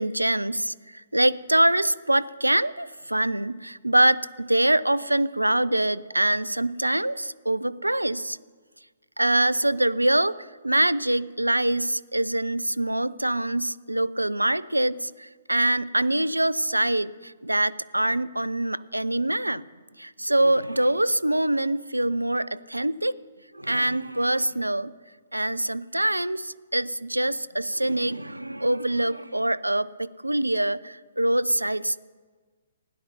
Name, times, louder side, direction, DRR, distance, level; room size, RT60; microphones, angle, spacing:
voice 1, 0.0-8.4 9.2-10.4 10.6-19.6 20.0-23.1 23.5-24.9 25.3-32.0, right 1 dB, 85° right, 17 dB, 0.4 m, -24 dB
16.0 x 10.5 x 4.5 m, 1.4 s
figure-of-eight pair, 125°, 0 cm